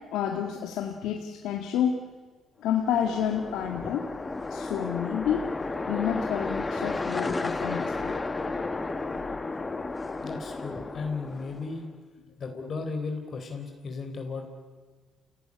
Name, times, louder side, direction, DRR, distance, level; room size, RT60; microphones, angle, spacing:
voice 1, 0.1-2.0 2.6-4.1 4.5-5.5 5.9-8.6, left 9 dB, 90° left, 3 dB, 1.9 m, -29 dB
sound 1, 2.8-11.8, left 3 dB, 25° left, 1.6 m, -33 dB
voice 2, 10.2-11.9 12.4-14.5, left 4 dB, 50° left, 4 dB, 3.9 m, -35 dB
29.0 x 17.5 x 9.8 m, 1.4 s
cardioid pair, 90°, 0 cm